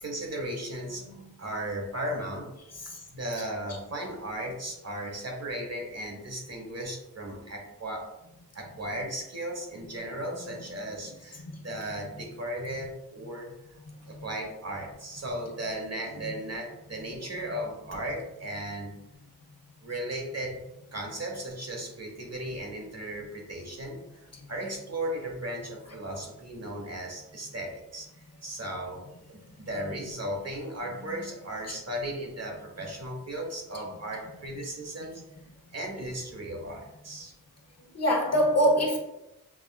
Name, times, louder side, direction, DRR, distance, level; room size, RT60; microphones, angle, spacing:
voice 1, 0.0-1.0 1.4-8.1 8.5-13.5 14.0-18.9 19.8-20.6 20.9-28.1 28.4-35.2 35.7-37.3, right 1 dB, 45° right, 1 dB, 1.1 m, -36 dB
voice 2, 13.9-14.2 37.9-39.0, equal, 40° left, 0 dB, 1.1 m, -25 dB
5.9 x 2.4 x 2.3 m, 0.90 s
cardioid pair, 45°, 37 cm